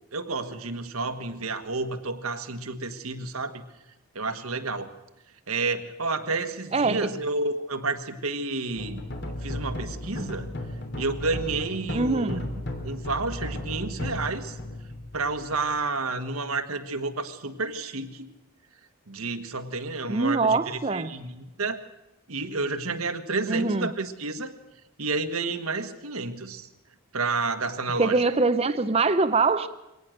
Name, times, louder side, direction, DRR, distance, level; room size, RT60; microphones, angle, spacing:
voice 1, 0.1-3.6 4.1-4.9 5.5-9.0 9.4-10.5 11.0-12.5 12.8-14.6 15.1-18.3 19.1-21.8 22.3-24.5 25.0-26.7 27.1-28.2, right 3 dB, 90° right, 1.5 m, -30 dB
voice 2, 6.7-7.1 11.9-12.4 20.1-21.1 23.5-23.9 28.0-29.7, right 3 dB, 30° right, 0.7 m, -23 dB
sound 1, 8.8-16.0, left 1 dB, 55° left, 3.1 m, -35 dB
23.0 x 18.0 x 6.6 m
head